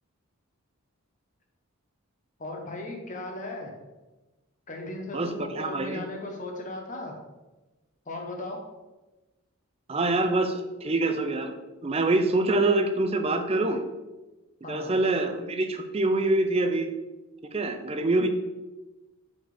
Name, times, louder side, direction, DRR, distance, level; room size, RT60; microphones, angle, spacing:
voice 1, 2.4-3.7 4.7-7.1 8.1-8.6 14.6-15.0, left 2 dB, 35° left, 2 dB, 1.0 m, -37 dB
voice 2, 5.1-6.0 9.9-11.5 11.8-13.8 14.7-16.9 17.5-18.3, right 2 dB, 25° right, 7 dB, 0.4 m, -25 dB
5.2 x 4.2 x 4.8 m, 1.1 s
head